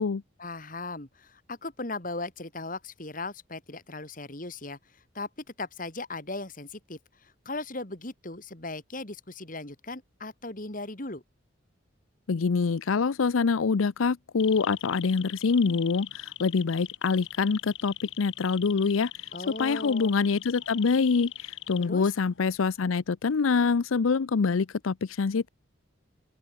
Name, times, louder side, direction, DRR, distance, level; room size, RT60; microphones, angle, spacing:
voice 1, 0.4-4.8 5.1-5.3 5.6-11.2 19.3-20.2 21.8-22.1, left 2 dB, 40° left, 2.7 m, -38 dB
voice 2, 12.3-19.3 19.6-25.5, left 5 dB, 90° left, 0.5 m, -25 dB
sound 1, 14.4-22.3 22.5-22.9, left 12 dB, 65° left, 4.9 m, -41 dB
open air
head